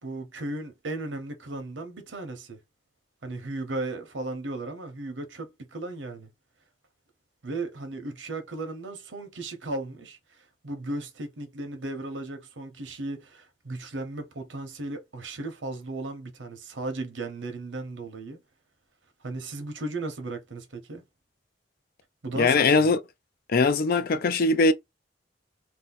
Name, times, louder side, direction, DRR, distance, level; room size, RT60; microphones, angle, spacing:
voice 1, 0.0-2.6 3.2-6.3 7.4-18.4 19.2-21.0 22.2-22.9, right 2 dB, 85° right, 0.8 m, -36 dB
voice 2, 22.4-23.0 23.5-24.7, left 3 dB, 55° left, 0.4 m, -21 dB
2.7 x 2.1 x 3.9 m
head